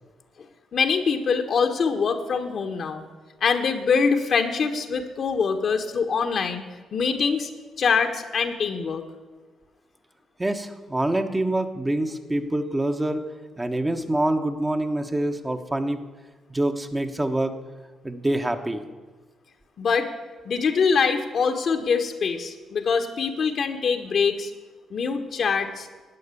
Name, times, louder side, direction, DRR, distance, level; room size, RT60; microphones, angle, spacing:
voice 1, 0.7-3.0 3.4-6.6 6.9-7.5 7.8-9.0 19.8-20.1 20.4-24.5 24.9-25.9, left 5 dB, 60° left, 5 dB, 1.4 m, -24 dB
voice 2, 10.4-13.2 13.6-16.0 16.5-17.6 18.0-18.8, right 1 dB, 20° right, 5 dB, 1.3 m, -25 dB
12.5 x 8.5 x 8.5 m, 1.3 s
supercardioid pair, 55°, 0 cm